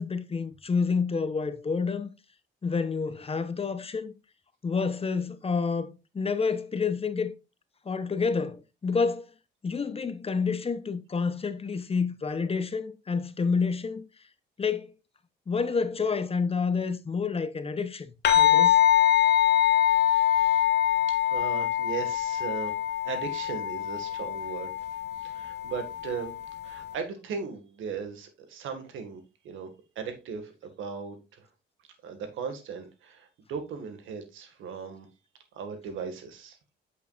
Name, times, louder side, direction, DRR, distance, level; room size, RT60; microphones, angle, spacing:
voice 1, 0.0-2.1 2.6-4.1 4.6-7.3 7.8-9.3 9.6-14.1 14.6-14.9 15.5-18.8, left 5 dB, 30° left, 0.9 m, -29 dB
sound 1, 18.2-26.9, left 11 dB, 60° left, 1.6 m, -24 dB
voice 2, 19.7-20.6 21.1-24.8 25.2-26.3 26.6-29.7 30.0-31.5 32.0-35.1 35.5-36.6, right 6 dB, 80° right, 1.9 m, -38 dB
8.3 x 6.5 x 2.5 m
cardioid pair, 90°, 20 cm